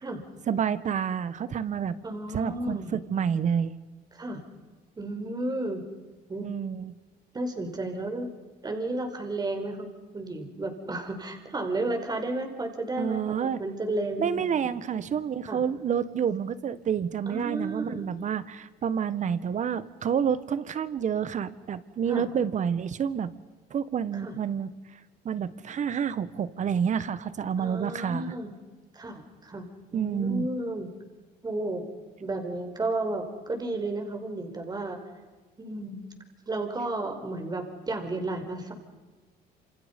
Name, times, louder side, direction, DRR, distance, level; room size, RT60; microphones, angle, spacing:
voice 1, 0.5-1.9 2.3-3.7 6.4-7.0 13.0-13.6 14.2-23.3 23.7-25.0 25.3-28.3 29.9-30.5, right 7 dB, 45° right, 15 dB, 1.6 m, -29 dB
voice 2, 2.0-2.9 4.1-4.4 5.0-5.8 6.3-6.5 7.3-8.3 8.6-9.9 10.1-14.7 15.5-15.6 17.3-18.2 22.1-22.3 24.1-24.4 27.6-28.5 28.9-30.9 31.4-31.8 32.2-35.0 35.6-36.1 36.5-38.7, right 2 dB, 25° right, 4 dB, 5.0 m, -33 dB
28.0 x 27.5 x 5.5 m, 1.3 s
cardioid pair, 110°, 17 cm